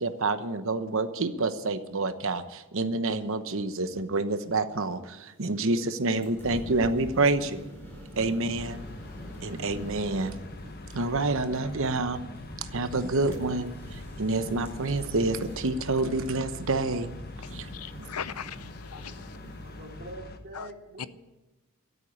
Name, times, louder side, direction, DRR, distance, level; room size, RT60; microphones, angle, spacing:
voice 1, 0.0-2.4 2.7-5.0 5.4-7.5 8.2-8.8 9.4-10.3 11.0-12.2 12.7-13.7 14.2-17.1, right 3 dB, 60° right, 1.0 m, -27 dB
sound 1, 6.2-20.1, right 1 dB, 10° left, 4.2 m, -45 dB
sound 2, 8.6-20.4, left 2 dB, 45° left, 1.2 m, -43 dB
voice 2, 17.7-19.3 20.5-20.7 21.0-21.1, left 8 dB, 80° left, 0.6 m, -39 dB
voice 3, 19.6-21.1, right 1 dB, 45° right, 2.9 m, -44 dB
13.5 x 8.3 x 9.9 m
head